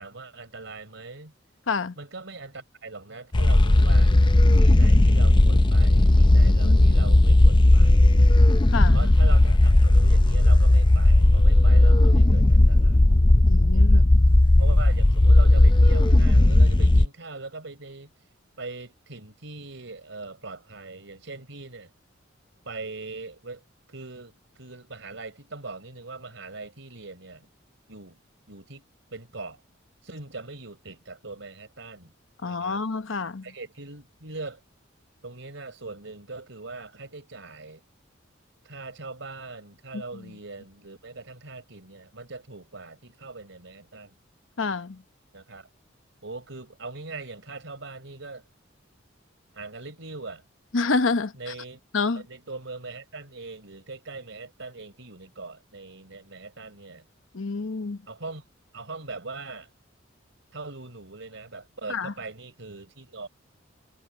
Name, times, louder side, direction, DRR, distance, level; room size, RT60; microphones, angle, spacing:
voice 1, 0.0-1.3 2.0-4.1 4.5-8.1 8.9-13.1 13.7-14.1 14.6-18.1 18.6-21.9 22.7-27.5 27.9-28.2 28.5-28.9 29.1-29.6 30.0-32.1 32.4-32.8 33.4-34.6 35.2-37.8 38.6-44.2 45.3-45.7 46.2-48.4 49.5-50.4 51.3-51.8 52.1-57.1 58.1-58.5 58.7-59.7 60.5-63.3, right 3 dB, 70° right, 5.2 m, -41 dB
sound 1, 3.3-17.1, left 1 dB, 25° left, 0.6 m, -16 dB
voice 2, 6.3-7.0 8.7-9.0 13.4-14.2 32.4-33.5 39.9-40.0 44.6-45.0 50.7-51.3 51.9-52.2 57.3-58.0 61.9-62.1, left 4 dB, 75° left, 1.0 m, -28 dB
head